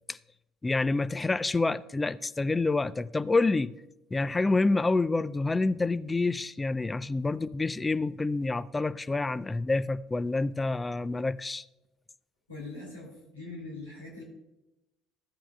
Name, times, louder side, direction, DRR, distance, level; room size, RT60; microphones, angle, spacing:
voice 1, 0.6-3.7 4.1-11.6, left 3 dB, 15° left, 0.4 m, -28 dB
voice 2, 12.5-14.2, left 2 dB, 80° left, 2.9 m, -42 dB
15.0 x 8.6 x 2.3 m
figure-of-eight pair, 55°, 0 cm